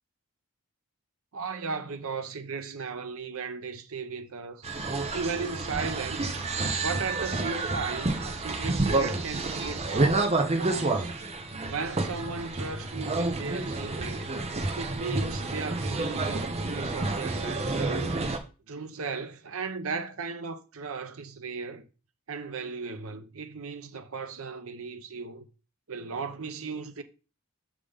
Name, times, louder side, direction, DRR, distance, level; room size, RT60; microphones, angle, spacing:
voice 1, 1.3-4.7 5.1-6.3 6.7-11.2 11.6-14.3 14.8-18.2 18.7-21.8 22.3-25.5 25.9-27.0, right 4 dB, 75° right, 0.8 m, -36 dB
sound 1, 4.6-18.4, right 2 dB, 30° right, 0.8 m, -29 dB
6.7 x 3.7 x 5.1 m
head